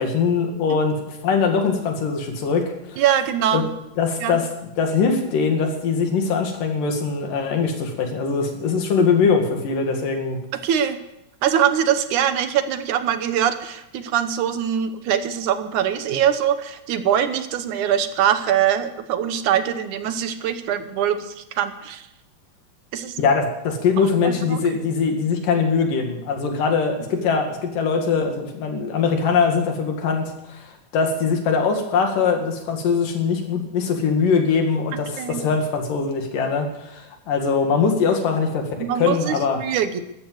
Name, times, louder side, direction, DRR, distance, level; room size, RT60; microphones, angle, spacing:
voice 1, 0.0-3.0 3.5-3.7 4.0-4.5 4.8-10.4 23.2-39.6, left 5 dB, 85° left, 4 dB, 3.9 m, -22 dB
voice 2, 3.0-3.7 4.2-4.4 9.0-9.1 10.5-11.0 11.4-22.1 22.9-23.2 24.0-24.6 35.2-35.4 38.8-40.0, right 9 dB, 70° right, 10 dB, 2.3 m, -23 dB
13.5 x 13.5 x 7.9 m, 0.89 s
omnidirectional pair, 3.7 m